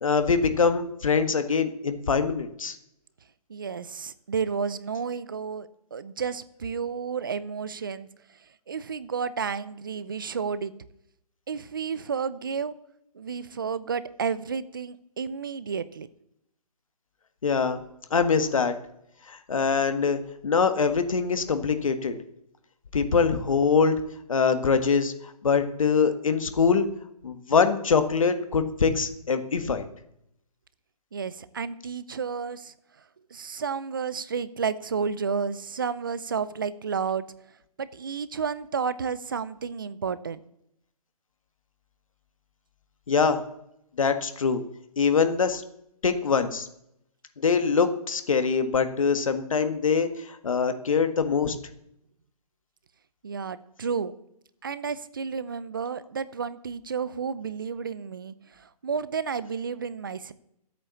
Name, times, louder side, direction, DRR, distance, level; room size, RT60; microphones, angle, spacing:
voice 1, 0.0-2.8 17.4-17.8 18.1-18.7 19.3-22.2 22.9-24.0 24.3-25.1 25.4-26.9 27.2-29.9 43.1-43.4 44.0-44.6 45.0-45.6 46.0-46.7 47.4-51.6, left 5 dB, 55° left, 9 dB, 1.6 m, -23 dB
voice 2, 3.5-8.1 8.7-10.7 11.5-12.7 13.1-16.1 31.1-32.7 33.3-37.2 37.8-40.4 53.2-54.1 54.6-60.3, right 6 dB, 35° right, 16 dB, 0.6 m, -31 dB
12.5 x 8.5 x 7.0 m, 0.77 s
hypercardioid pair, 170°, 20 cm